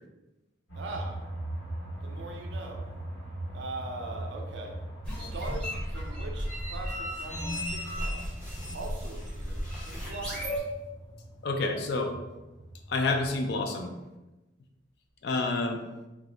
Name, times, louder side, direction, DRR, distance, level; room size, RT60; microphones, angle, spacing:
sound 1, 0.7-13.6, right 1 dB, 70° left, 1.1 m, -41 dB
voice 1, 0.8-1.2 2.0-2.9 3.5-4.8 5.2-8.4 8.7-10.6, right 2 dB, 70° right, 2 dB, 0.5 m, -41 dB
sound 2, 5.0-10.6, equal, 5° left, 0.6 m, -35 dB
sound 3, 6.4-10.9, left 1 dB, 40° left, 0.7 m, -50 dB
voice 2, 11.4-12.1 12.9-13.9 15.2-15.8, left 3 dB, 55° left, 4 dB, 0.4 m, -28 dB
2.3 x 2.0 x 3.7 m, 1.1 s
head